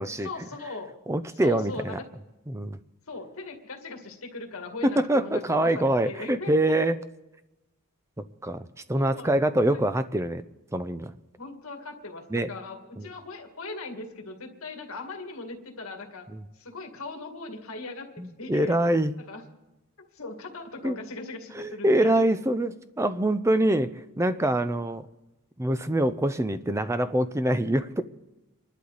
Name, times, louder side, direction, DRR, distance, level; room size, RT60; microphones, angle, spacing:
voice 1, 0.2-0.9 1.3-2.0 3.1-6.8 8.9-9.3 9.7-9.8 11.4-16.3 16.6-18.1 18.4-18.7 19.3-19.4 20.0-22.3, left 3 dB, 70° left, 2 dB, 2.1 m, -39 dB
voice 2, 1.1-2.0 2.5-2.8 4.8-6.9 8.2-10.4 10.7-11.1 12.3-12.5 13.0-13.1 16.3-16.5 18.2-19.2 20.8-21.1 21.5-25.1 25.6-28.0, right 1 dB, 15° right, 12 dB, 0.5 m, -25 dB
27.5 x 11.5 x 4.1 m, 1.0 s
head